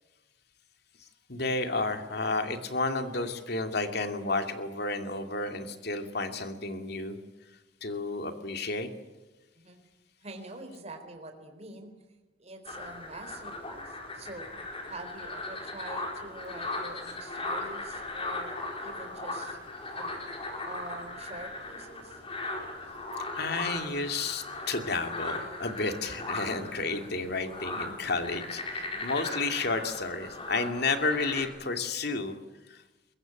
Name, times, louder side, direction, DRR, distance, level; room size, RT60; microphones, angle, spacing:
voice 1, 1.3-7.2 7.8-8.9 23.4-32.4 32.7-32.8, left 3 dB, 60° left, 6 dB, 2.5 m, -31 dB
voice 2, 10.2-11.9 12.4-14.5 14.9-19.6 19.9-20.2 20.6-22.2 26.7-27.3 28.8-29.0, right 2 dB, 35° right, 5 dB, 3.9 m, -45 dB
sound 1, 12.7-31.4, left 2 dB, 30° left, 4.7 m, -38 dB
22.5 x 21.5 x 9.1 m, 1.1 s
head